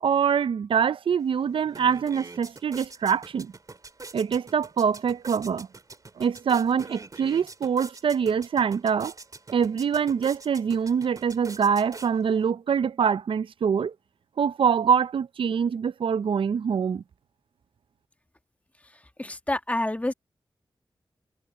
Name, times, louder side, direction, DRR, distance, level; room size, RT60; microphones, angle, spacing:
voice 1, 0.0-3.5 4.1-5.7 6.2-9.1 9.5-13.9 14.4-17.0, right 7 dB, 80° right, 0.5 m, -24 dB
sound 1, 1.2-1.3 1.6-12.5, right 3 dB, 40° right, 2.6 m, -45 dB
voice 2, 19.2-20.1, left 1 dB, 15° left, 1.6 m, -27 dB
cardioid pair, 70°, 9 cm